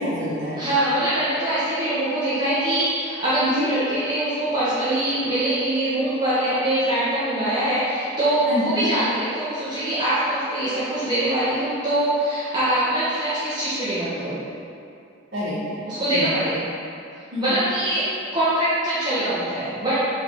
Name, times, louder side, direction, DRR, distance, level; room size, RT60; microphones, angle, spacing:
voice 1, 0.0-0.7 3.4-3.7 8.5-8.9 15.3-15.8 16.1-16.3 17.3-17.6, left 1 dB, 55° right, -11 dB, 1.5 m, -27 dB
voice 2, 0.6-14.4 15.9-16.7 17.4-18.1 18.3-20.0, right 1 dB, 20° right, -13 dB, 1.6 m, -23 dB
8.2 x 4.3 x 3.8 m, 2.5 s
head